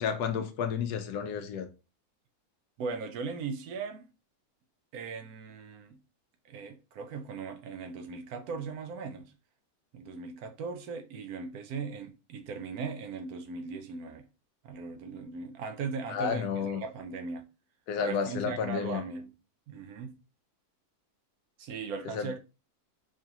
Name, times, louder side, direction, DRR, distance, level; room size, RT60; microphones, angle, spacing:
voice 1, 0.0-1.7 16.1-16.8 17.9-19.0 22.1-22.3, left 7 dB, 85° left, 1.2 m, -31 dB
voice 2, 2.8-4.1 4.9-6.0 6.4-9.3 9.9-14.3 14.6-17.5 18.0-19.3 19.7-20.2 21.6-22.4, right 4 dB, 75° right, 1.1 m, -38 dB
4.9 x 2.8 x 2.3 m
omnidirectional pair, 1.6 m